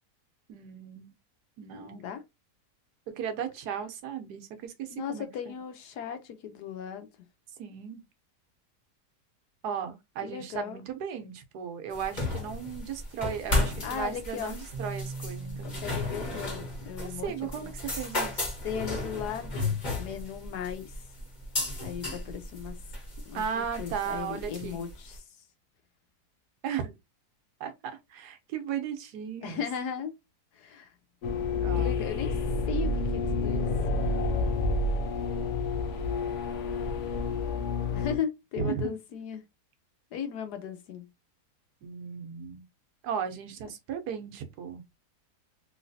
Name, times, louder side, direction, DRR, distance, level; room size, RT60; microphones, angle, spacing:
voice 1, 0.5-1.1 1.6-2.0 3.1-5.6 7.6-8.0 9.6-16.0 17.0-18.5 23.3-24.8 26.6-26.9 27.6-29.6 31.6-32.0 38.6-38.9 41.8-42.6 43.0-44.8, right 7 dB, 75° right, 1.3 m, -36 dB
voice 2, 1.7-2.2 4.9-7.1 10.2-10.8 13.8-14.6 15.6-17.7 18.6-20.9 21.8-22.8 23.3-25.2 29.4-30.1 30.5-30.9 31.8-32.4 32.7-33.7 37.9-39.4 40.1-41.1, left 8 dB, 80° left, 1.2 m, -36 dB
sound 1, 11.9-25.2, left 2 dB, 30° left, 1.2 m, -34 dB
sound 2, 14.7-22.4, right 3 dB, 35° right, 1.0 m, -45 dB
sound 3, 31.2-38.2, left 3 dB, 60° left, 0.8 m, -29 dB
3.2 x 3.1 x 2.6 m
omnidirectional pair, 1.8 m